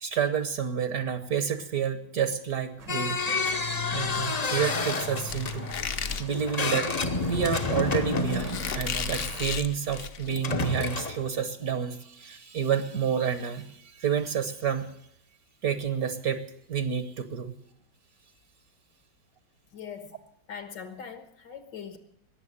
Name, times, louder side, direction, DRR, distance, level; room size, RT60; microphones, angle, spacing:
voice 1, 0.0-3.2 3.9-6.9 7.2-14.9 15.6-17.5, right 8 dB, 60° right, 11 dB, 1.4 m, -29 dB
sound 1, 2.8-9.6, right 5 dB, 75° right, 2.2 m, -47 dB
sound 2, 2.9-9.4 10.3-11.3, left 3 dB, 35° left, 0.7 m, -30 dB
Squeak, 5.3-10.4, left 6 dB, 50° left, 1.0 m, -35 dB
voice 2, 19.7-20.2 20.5-22.0, left 7 dB, 75° left, 9 dB, 2.2 m, -41 dB
19.5 x 7.2 x 9.8 m, 0.75 s
omnidirectional pair, 1.9 m